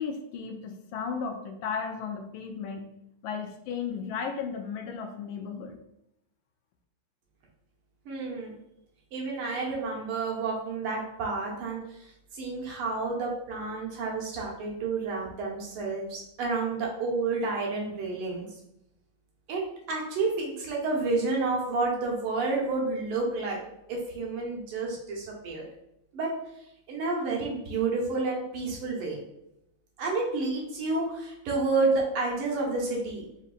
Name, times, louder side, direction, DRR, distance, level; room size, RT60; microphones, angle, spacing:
voice 1, 0.0-2.8 3.2-5.8, left 6 dB, 75° left, 5 dB, 1.3 m, -34 dB
voice 2, 8.1-8.6 9.1-18.5 19.5-19.6 19.9-25.7 26.1-26.3 26.9-29.2 30.0-33.3, right 3 dB, 85° right, -2 dB, 1.9 m, -30 dB
6.0 x 2.7 x 2.4 m, 0.81 s
omnidirectional pair, 2.4 m